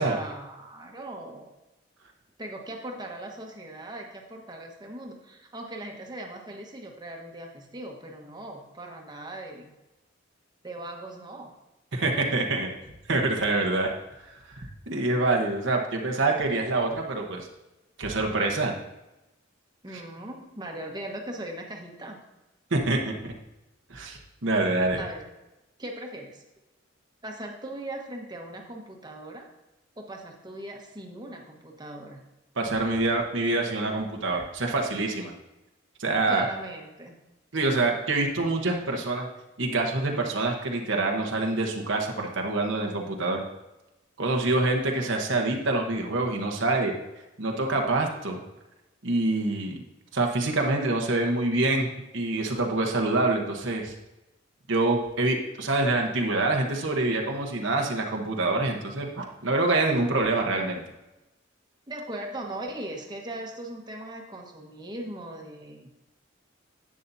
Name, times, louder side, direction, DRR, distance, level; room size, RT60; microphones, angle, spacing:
voice 1, 0.0-1.5 2.4-9.7 10.6-11.5 12.0-12.7 19.8-22.2 24.9-25.2 25.8-26.4 27.2-29.5 30.0-32.2 36.3-37.1 61.9-65.9, right 1 dB, 20° right, 1 dB, 1.3 m, -39 dB
voice 2, 11.9-12.7 13.1-13.9 14.5-14.6 14.9-17.5 18.0-18.7 22.7-23.3 23.9-25.0 32.6-35.3 36.0-36.5 37.5-39.3 39.6-43.4 44.2-46.9 47.4-48.4 49.0-49.8 50.1-51.9 52.1-53.9 54.7-60.8, right 2 dB, 70° right, 1 dB, 1.2 m, -26 dB
11.0 x 8.4 x 2.7 m, 0.98 s
head